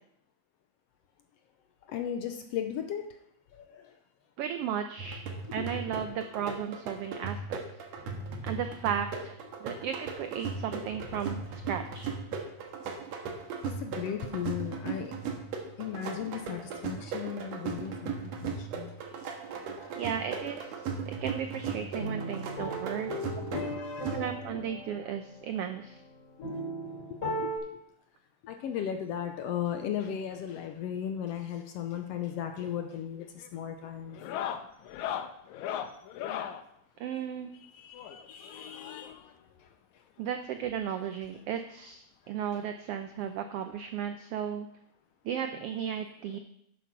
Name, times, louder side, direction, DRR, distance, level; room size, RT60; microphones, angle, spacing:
voice 1, 1.9-3.1 3.5-3.9 5.6-5.7 8.0-8.5 9.5-9.6 13.5-15.2 15.8-18.9 19.8-20.0 23.5-24.3 24.5-24.6 26.5-26.6 27.0-27.5 28.4-34.2 37.6-39.2, left 9 dB, 75° left, 6 dB, 1.6 m, -37 dB
voice 2, 4.4-5.2 5.5-7.6 7.9-8.0 8.4-9.3 9.6-12.1 19.9-23.1 24.1-26.0 37.0-37.5 40.2-44.7 45.2-46.4, right 8 dB, 90° right, 7 dB, 1.3 m, -35 dB
sound 1, 5.0-24.6, right 5 dB, 65° right, 2.3 m, -38 dB
sound 2, 22.0-27.6, equal, 25° left, 3.8 m, -37 dB
sound 3, 32.6-32.9 33.2-33.5 34.1-36.6 37.9-39.3 40.4-40.5 40.7-40.8 41.2-41.3 42.6-42.7 44.1-44.2, left 9 dB, 90° left, 2.1 m, -38 dB
9.4 x 7.4 x 6.0 m, 0.75 s
omnidirectional pair, 3.4 m